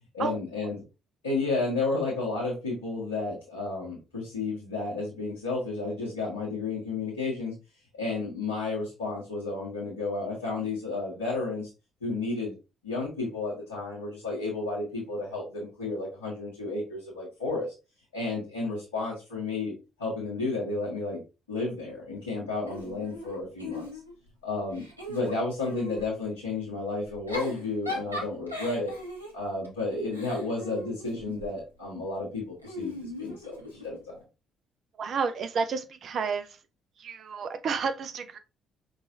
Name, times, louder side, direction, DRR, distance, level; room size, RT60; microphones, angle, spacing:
voice 1, 0.1-0.8 1.2-7.5 7.9-11.7 12.0-12.6 12.8-17.7 18.1-21.2 21.5-23.8 24.4-28.9 29.3-34.2, left 3 dB, 80° left, 1.4 m, -32 dB
Giggle / Chuckle chortle, 22.7-24.3 24.7-26.1 27.1-31.5 32.6-34.0, left 1 dB, 90° right, 0.7 m, -39 dB
voice 2, 35.0-36.6 37.0-38.4, right 5 dB, 50° right, 0.6 m, -31 dB
5.4 x 3.2 x 2.6 m
figure-of-eight pair, 45°, 0 cm